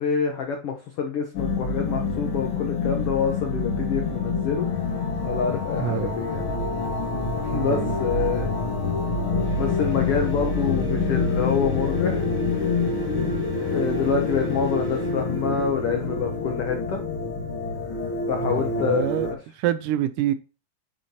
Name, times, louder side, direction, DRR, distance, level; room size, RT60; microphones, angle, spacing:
voice 1, 0.0-4.7 5.2-6.5 7.3-8.5 9.5-12.3 13.7-17.0 18.3-19.4, left 6 dB, 75° left, 1.3 m, -27 dB
sound 1, 1.3-19.3, left 3 dB, 50° left, 1.7 m, -26 dB
voice 2, 5.8-6.2 7.6-7.9 18.4-20.3, right 13 dB, 80° right, 2.0 m, -27 dB
sound 2, 9.4-15.3, right 1 dB, 5° left, 1.8 m, -44 dB
9.2 x 5.6 x 2.8 m
omnidirectional pair, 4.0 m